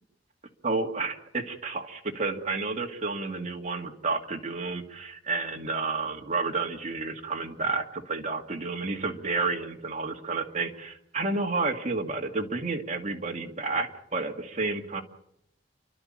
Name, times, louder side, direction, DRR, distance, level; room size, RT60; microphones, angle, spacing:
voice 1, 0.6-15.0, right 3 dB, 40° right, 3 dB, 2.2 m, -31 dB
29.0 x 12.0 x 8.8 m, 0.77 s
head